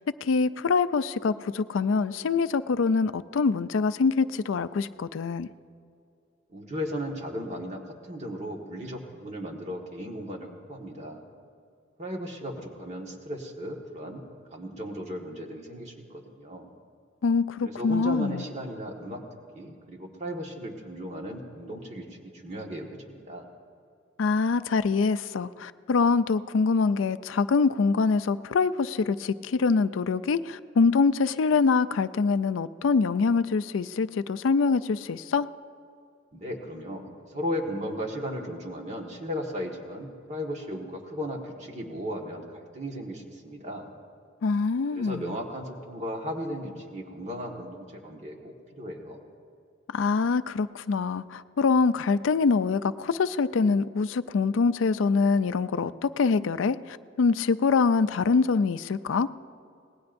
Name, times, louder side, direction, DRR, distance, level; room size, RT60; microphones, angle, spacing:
voice 1, 0.2-5.5 17.2-18.4 24.2-35.5 44.4-45.2 49.9-59.3, left 4 dB, 85° left, 13 dB, 0.4 m, -24 dB
voice 2, 6.5-11.2 12.0-16.7 17.6-19.2 19.5-23.5 36.3-43.9 44.9-49.2, equal, 35° right, 1 dB, 1.6 m, -36 dB
26.0 x 19.0 x 2.6 m, 2.4 s
head